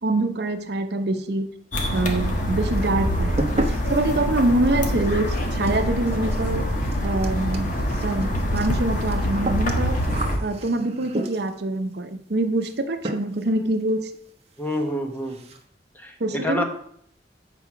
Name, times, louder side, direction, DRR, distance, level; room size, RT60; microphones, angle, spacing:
voice 1, 0.0-1.5 1.9-3.6 3.9-6.6 7.0-7.7 8.0-10.0 10.4-14.1 16.2-16.6, right 2 dB, 65° right, 8 dB, 0.7 m, -25 dB
sound 1, 1.7-10.4, equal, 45° left, 1.4 m, -25 dB
sound 2, 1.9-2.5 2.8-11.7 12.6-12.8 13.0-13.5 13.8-13.9 14.3-14.4 14.7-14.8 15.1-15.6, right 1 dB, 35° right, 0.9 m, -33 dB
voice 2, 14.6-15.4 16.0-16.1 16.4-16.6, left 1 dB, 10° left, 4 dB, 1.1 m, -27 dB
7.8 x 4.9 x 5.9 m, 0.64 s
head